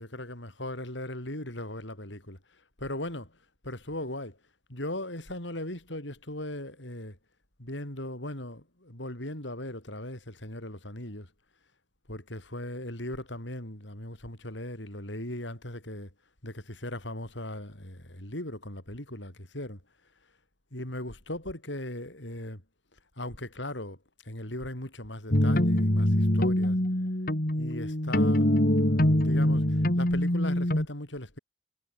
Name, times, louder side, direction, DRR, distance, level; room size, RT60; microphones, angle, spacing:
voice 1, 0.0-3.4 3.6-4.4 4.7-7.2 7.6-11.3 12.1-16.1 16.4-19.8 20.7-22.6 23.2-26.8 27.5-28.5 28.9-31.4, left 1 dB, 75° left, 6.3 m, -38 dB
sound 1, 25.3-30.9, left 1 dB, 50° left, 3.0 m, -24 dB
head